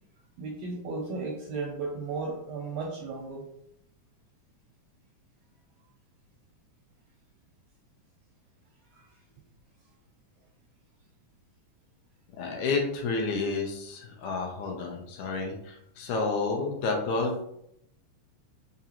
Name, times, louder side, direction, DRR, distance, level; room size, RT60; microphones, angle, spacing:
voice 1, 0.4-3.5 8.9-9.1, right 3 dB, 80° right, -1 dB, 1.5 m, -35 dB
voice 2, 12.4-17.4, left 3 dB, 75° left, 1 dB, 1.9 m, -30 dB
5.0 x 2.5 x 2.8 m, 0.75 s
omnidirectional pair, 3.5 m